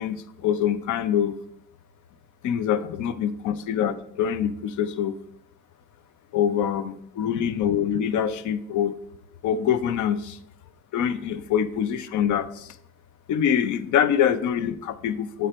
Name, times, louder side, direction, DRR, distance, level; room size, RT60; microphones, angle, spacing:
voice 1, 0.0-1.4 2.4-5.2 6.3-8.9 9.4-10.4 10.9-12.8 13.3-15.5, left 9 dB, 80° left, 15 dB, 0.6 m, -25 dB
7.8 x 4.2 x 5.1 m, 0.72 s
cardioid pair, 90°, 30 cm